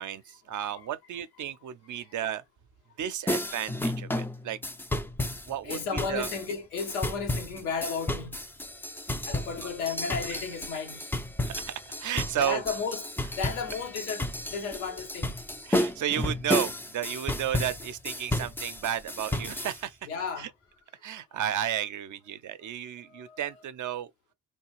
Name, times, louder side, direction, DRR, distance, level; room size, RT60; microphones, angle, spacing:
voice 1, 0.0-2.4 3.0-4.6 5.5-6.3 11.4-11.7 12.0-12.6 15.6-20.0 20.4-20.5 21.0-24.1, right 11 dB, 50° right, 0.5 m, -33 dB
sound 1, 3.3-19.8, left 1 dB, 5° left, 0.4 m, -32 dB
voice 2, 5.6-8.4 9.3-11.1 12.4-13.1 13.4-15.4 20.1-20.5 23.0-23.5, left 5 dB, 85° left, 0.9 m, -34 dB
3.3 x 2.3 x 3.1 m
hypercardioid pair, 50°, 41 cm